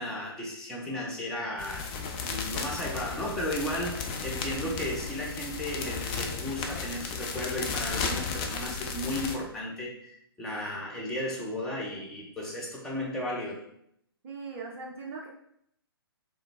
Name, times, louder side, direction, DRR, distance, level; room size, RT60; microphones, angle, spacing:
voice 1, 0.0-1.9 2.2-13.6, left 1 dB, 5° left, -4 dB, 0.7 m, -34 dB
sound 1, 1.6-9.4, left 5 dB, 20° left, 0.4 m, -34 dB
voice 2, 14.2-15.3, right 4 dB, 30° right, -3 dB, 0.6 m, -39 dB
3.8 x 3.2 x 3.4 m, 0.71 s
figure-of-eight pair, 125°, 13 cm